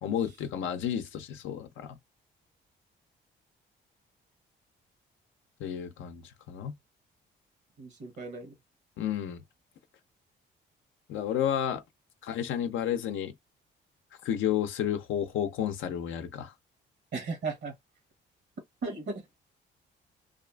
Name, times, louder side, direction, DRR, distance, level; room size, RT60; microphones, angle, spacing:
voice 1, 0.0-2.0 5.6-6.7 9.0-9.4 11.1-11.8 12.2-13.3 14.2-16.5, left 9 dB, 75° left, 0.5 m, -31 dB
voice 2, 7.8-8.5 17.1-17.7 18.8-19.3, right 4 dB, 60° right, 0.9 m, -36 dB
2.4 x 2.4 x 2.2 m
cardioid pair, 90°, 20 cm